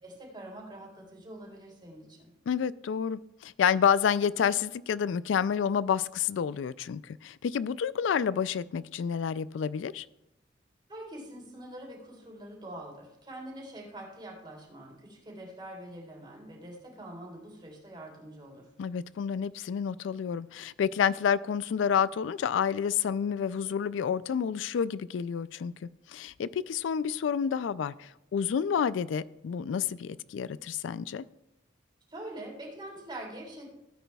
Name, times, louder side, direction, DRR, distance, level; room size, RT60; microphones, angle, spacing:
voice 1, 0.0-2.3 10.9-18.7 32.1-33.7, right 1 dB, 25° right, 3.7 m, -44 dB
voice 2, 2.5-10.0 18.8-25.7 26.1-31.2, left 7 dB, 80° left, 0.3 m, -29 dB
16.5 x 9.2 x 2.3 m
head